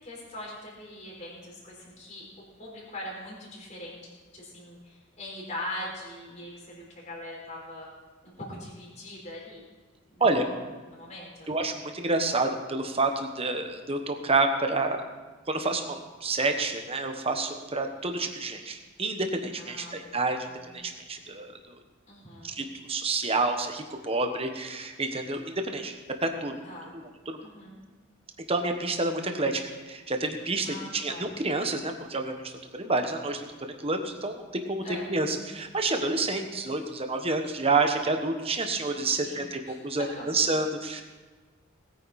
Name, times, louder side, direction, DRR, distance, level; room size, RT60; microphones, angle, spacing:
voice 1, 0.0-2.2 2.6-7.9 8.2-9.7 10.1-10.6 10.9-11.5 19.6-20.2 20.5-20.8 22.1-22.6 26.6-26.9 27.4-27.8 30.6-31.3 34.8-35.5 39.2-40.6, left 1 dB, 35° left, -3 dB, 4.2 m, -42 dB
voice 2, 11.5-15.0 15.5-20.5 20.7-21.7 22.4-26.0 26.2-26.5 26.9-27.4 28.5-29.6 29.9-34.8 35.1-41.0, right 3 dB, 25° right, 5 dB, 1.2 m, -29 dB
19.5 x 9.5 x 4.2 m, 1.3 s
head